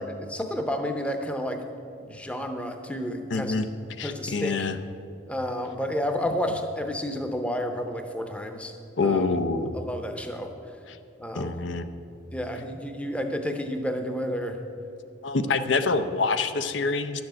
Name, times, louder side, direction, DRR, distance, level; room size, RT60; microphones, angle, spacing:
voice 1, 0.0-1.6 2.0-3.6 4.0-4.7 5.3-8.7 9.0-9.3 9.7-10.5 11.2-11.5 12.3-14.6, equal, 5° left, 5 dB, 0.7 m, -31 dB
voice 2, 3.3-3.7 4.0-4.8 9.0-9.8 10.9-11.0 11.4-11.9 15.2-17.2, left 4 dB, 75° left, 10 dB, 0.6 m, -26 dB
11.5 x 7.1 x 7.6 m, 2.5 s
head